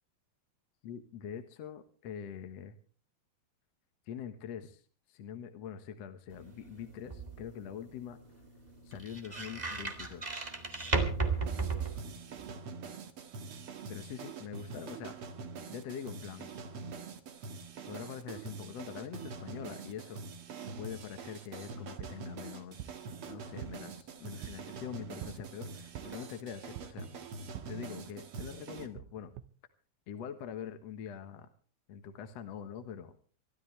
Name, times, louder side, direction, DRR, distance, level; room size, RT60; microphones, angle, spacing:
voice 1, 0.8-2.8 4.1-4.8 5.1-8.2 8.8-10.4 13.9-15.2 15.7-16.5 17.9-20.2 20.8-22.9 23.2-27.1 27.7-29.3 30.1-31.5 31.9-33.1, left 8 dB, 65° left, 8 dB, 1.7 m, -44 dB
sound 1, 6.3-12.5, right 3 dB, 25° right, 0.9 m, -36 dB
sound 2, 11.4-28.9, right 4 dB, 55° right, 1.6 m, -45 dB
sound 3, 22.0-29.4, right 11 dB, 85° right, 1.6 m, -49 dB
25.0 x 13.0 x 3.3 m, 0.40 s
omnidirectional pair, 4.6 m